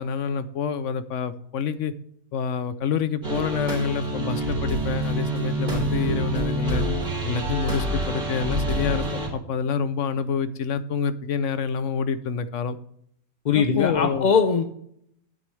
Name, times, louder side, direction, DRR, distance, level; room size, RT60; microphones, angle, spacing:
voice 1, 0.0-1.9 2.3-6.9 7.2-9.1 9.3-12.8 13.5-14.3, left 6 dB, 70° left, 13 dB, 0.9 m, -27 dB
sound 1, 3.2-9.3, right 1 dB, 35° right, 3.4 m, -27 dB
voice 2, 13.5-14.6, left 6 dB, 50° left, 7 dB, 0.5 m, -20 dB
9.4 x 9.1 x 3.2 m, 0.70 s
omnidirectional pair, 1.5 m